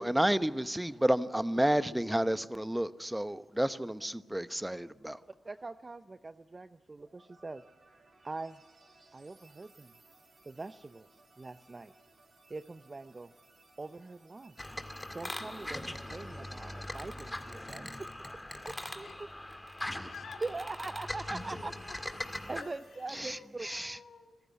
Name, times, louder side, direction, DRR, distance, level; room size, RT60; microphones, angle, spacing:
voice 1, 0.0-5.2 19.9-20.1 23.2-23.4 23.6-24.0, right 1 dB, 10° right, 13 dB, 1.0 m, -31 dB
voice 2, 4.0-4.6 19.0-20.4 20.8-20.9 21.6-21.7 22.6-24.3, left 6 dB, 70° left, 4 dB, 2.7 m, -52 dB
voice 3, 5.4-7.6 8.2-8.6 9.1-9.9 10.4-11.9 12.5-13.3 13.8-14.5 15.1-18.1 18.6-19.3 20.4-21.7 22.5-23.7, right 3 dB, 35° right, 11 dB, 0.7 m, -42 dB
sound 1, 7.0-23.9, right 3 dB, 55° right, 6.4 m, -63 dB
sound 2, 14.6-22.6, left 1 dB, 15° left, 2.1 m, -41 dB
25.5 x 15.0 x 9.5 m, 1.3 s
supercardioid pair, 40°, 0 cm